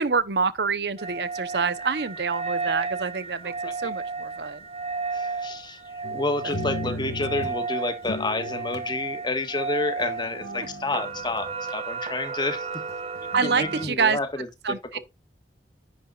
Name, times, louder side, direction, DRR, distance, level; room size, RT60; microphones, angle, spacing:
voice 1, 0.0-4.6 6.4-6.5 6.9-7.0 10.4-10.7 13.3-14.2 14.6-15.0, right 5 dB, 70° right, 0.9 m, -26 dB
sound 1, 1.0-13.9, right 4 dB, 35° right, 0.8 m, -33 dB
voice 2, 5.1-12.7 13.4-14.5 14.9-15.0, left 2 dB, 25° left, 1.5 m, -29 dB
sound 2, 6.0-7.6 8.0-8.9 10.0-11.7 12.9-14.0, left 1 dB, 75° left, 1.5 m, -36 dB
10.5 x 8.3 x 2.4 m
head